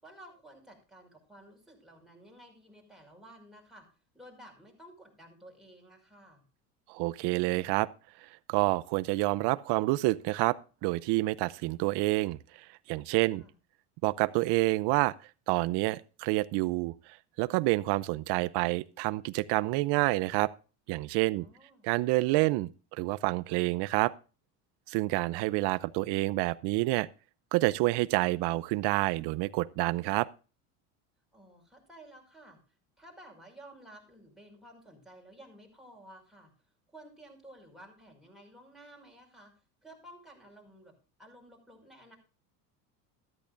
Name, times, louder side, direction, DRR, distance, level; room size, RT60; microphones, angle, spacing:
voice 1, 0.0-3.9 4.1-6.4 13.3-13.5 21.4-21.8 31.3-32.6 33.0-36.5 36.9-39.5 39.8-42.2, right 1 dB, ahead, 5.5 m, -53 dB
voice 2, 6.9-7.9 8.5-12.4 12.9-13.4 14.0-15.1 15.5-16.9 17.4-20.5 20.9-21.4 21.8-24.1 24.9-27.1 27.5-30.3, right 21 dB, 60° right, 0.8 m, -28 dB
13.5 x 13.0 x 2.6 m
supercardioid pair, 95°, 46 cm